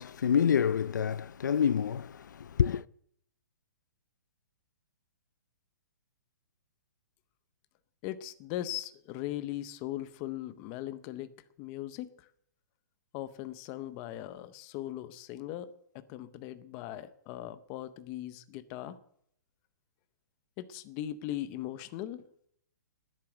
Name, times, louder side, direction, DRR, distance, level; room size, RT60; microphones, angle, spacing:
voice 1, 0.0-2.8, left 8 dB, 80° left, 0.5 m, -27 dB
voice 2, 8.0-12.3 13.1-19.0 20.6-22.3, left 13 dB, 15° left, 0.7 m, -39 dB
12.5 x 10.5 x 7.9 m
hypercardioid pair, 180°, 10 cm